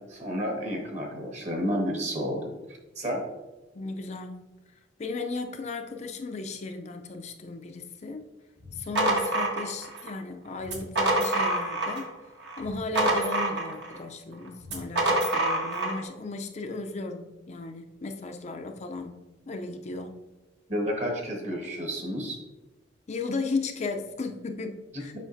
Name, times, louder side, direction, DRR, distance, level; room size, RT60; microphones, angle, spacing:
voice 1, 0.0-2.5 3.0-3.2 20.7-22.4, equal, 40° right, 1 dB, 1.3 m, -30 dB
voice 2, 3.7-4.5 5.0-8.2 8.7-12.1 12.6-19.2 19.5-20.2 23.1-25.1, left 3 dB, 35° left, 4 dB, 0.4 m, -35 dB
sound 1, 8.6-10.1 10.6-12.1 12.4-14.0 14.6-16.0, right 1 dB, 60° right, 1.3 m, -26 dB
7.4 x 5.6 x 2.6 m, 1.1 s
head